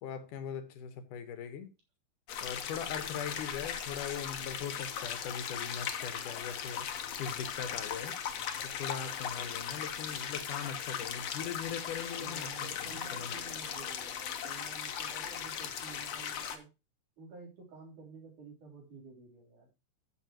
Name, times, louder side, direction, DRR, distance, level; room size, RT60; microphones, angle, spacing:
voice 1, 0.0-1.7 2.4-8.1 8.6-13.4, left 7 dB, 80° left, 2.7 m, -41 dB
sound 1, 2.3-16.6, left 8 dB, 60° left, 2.0 m, -38 dB
voice 2, 12.2-16.7 17.2-19.8, right 4 dB, 70° right, 4.9 m, -51 dB
14.0 x 7.3 x 2.9 m
omnidirectional pair, 3.7 m